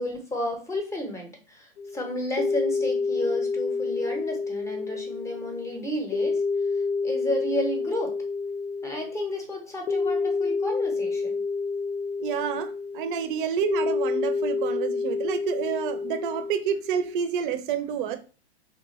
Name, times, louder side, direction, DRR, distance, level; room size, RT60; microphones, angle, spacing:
voice 1, 0.0-6.4 7.0-8.1 8.8-11.4, left 1 dB, 10° left, 3 dB, 0.7 m, -32 dB
sound 1, 1.8-17.2, left 4 dB, 85° left, 0.7 m, -29 dB
voice 2, 12.2-18.2, right 8 dB, 50° right, 10 dB, 0.6 m, -29 dB
3.6 x 2.4 x 3.0 m, 0.35 s
hypercardioid pair, 120°, 33 cm